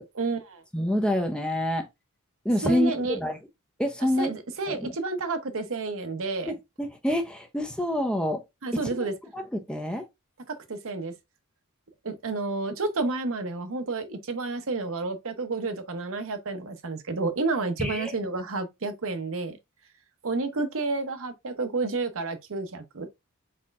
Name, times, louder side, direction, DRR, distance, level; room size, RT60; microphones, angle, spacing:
voice 1, 0.1-0.6 2.6-3.2 4.2-6.5 8.6-9.1 10.5-11.1 12.0-19.6 20.2-23.1, right 3 dB, 65° right, 0.9 m, -30 dB
voice 2, 0.7-1.9 2.4-3.4 3.8-4.3 4.6-4.9 6.5-8.4 8.7-8.8 9.3-10.1 17.8-18.1, left 1 dB, 5° left, 0.6 m, -27 dB
4.3 x 4.2 x 2.4 m
head